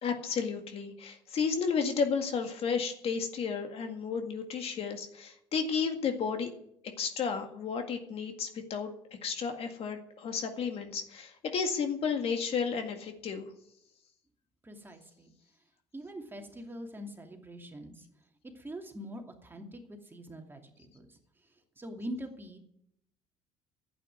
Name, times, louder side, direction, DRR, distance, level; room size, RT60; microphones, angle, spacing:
voice 1, 0.0-6.5 7.0-8.9 9.2-13.5, left 6 dB, 55° left, 5 dB, 2.0 m, -32 dB
voice 2, 14.6-15.3 15.9-18.1 18.4-21.2 21.8-22.6, equal, 20° right, 2 dB, 2.6 m, -43 dB
11.0 x 9.0 x 9.2 m, 0.74 s
supercardioid pair, 90°, 12 cm